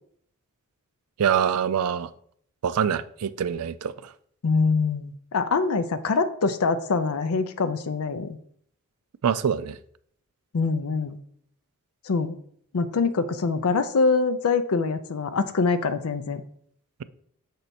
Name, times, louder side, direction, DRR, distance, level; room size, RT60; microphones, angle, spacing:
voice 1, 1.2-2.1 2.6-4.1 9.2-9.8, right 8 dB, 85° right, 15 dB, 0.4 m, -25 dB
voice 2, 4.4-8.4 10.5-11.2 12.1-12.3 12.7-16.4, left 4 dB, 80° left, 9 dB, 0.5 m, -24 dB
6.6 x 4.5 x 4.1 m, 0.63 s
head